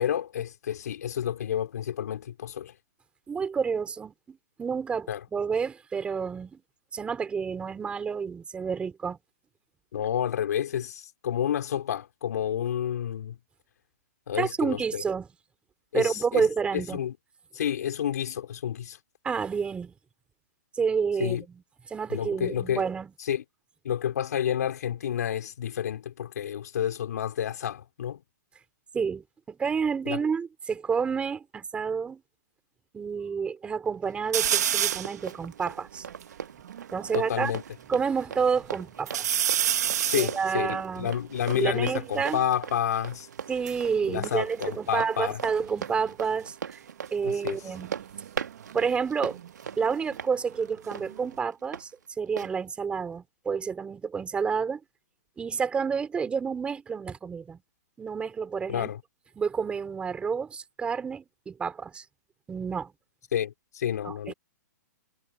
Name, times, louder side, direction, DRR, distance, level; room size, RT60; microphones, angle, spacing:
voice 1, 0.0-2.7 5.1-5.2 9.9-13.4 14.3-15.0 15.9-16.5 16.7-17.1 17.5-19.0 21.2-21.4 22.1-22.8 23.2-23.4 23.8-28.2 30.1-30.2 37.1-37.6 40.0-43.3 44.1-45.4 47.2-47.6 58.7-59.0 63.3-64.3, left 9 dB, 65° left, 4.3 m, -30 dB
voice 2, 3.3-6.6 6.9-9.2 14.4-15.3 15.9-17.0 19.2-19.9 20.7-21.6 21.9-23.1 28.9-32.2 32.9-36.1 36.9-37.5 37.9-39.3 40.2-41.1 41.5-42.4 43.5-46.8 47.1-47.9 48.7-49.4 49.8-51.9 52.2-54.8 55.4-57.6 58.0-58.9 59.4-62.0 62.5-62.9 64.0-64.3, right 6 dB, 10° right, 5.0 m, -29 dB
Run, 34.0-51.8 52.4-52.5, right 7 dB, 90° right, 2.2 m, -40 dB
sound 1, 34.3-35.2 35.7-35.8 36.0-37.6 38.1-38.7 39.1-42.4 43.4-45.3 45.6-46.0 47.6-50.2 50.6-51.4, right 10 dB, 65° right, 2.2 m, -31 dB
hypercardioid pair, 145°, 9 cm